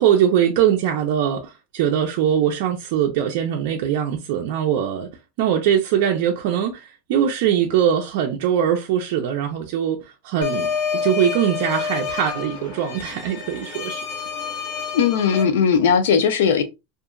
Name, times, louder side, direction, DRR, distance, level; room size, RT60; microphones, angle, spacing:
voice 1, 0.0-5.1 5.4-10.0 10.2-14.0, right 9 dB, 55° right, 0.4 m, -21 dB
sound 1, 10.4-15.4, left 6 dB, 55° left, 0.9 m, -28 dB
voice 2, 14.9-16.6, left 7 dB, 90° left, 0.5 m, -18 dB
2.8 x 2.4 x 2.4 m
supercardioid pair, 165°, 0 cm